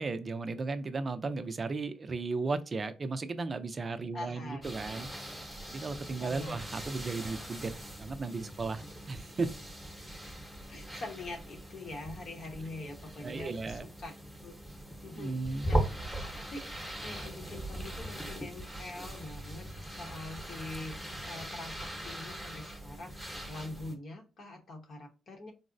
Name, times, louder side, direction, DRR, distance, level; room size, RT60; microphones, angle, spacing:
voice 1, 0.0-7.7 8.0-9.5 12.8-12.9 13.2-13.9 15.0-15.7, right 3 dB, 35° right, 0.4 m, -35 dB
voice 2, 4.1-4.7 6.2-6.7 10.7-14.1 14.4-14.6 15.0-15.4 15.7-16.6 17.0-21.0 21.2-23.2 23.5-25.5, left 2 dB, 55° left, 0.9 m, -44 dB
sound 1, 4.6-23.9, right 1 dB, ahead, 0.9 m, -40 dB
3.9 x 2.0 x 2.5 m
cardioid pair, 90°, 0 cm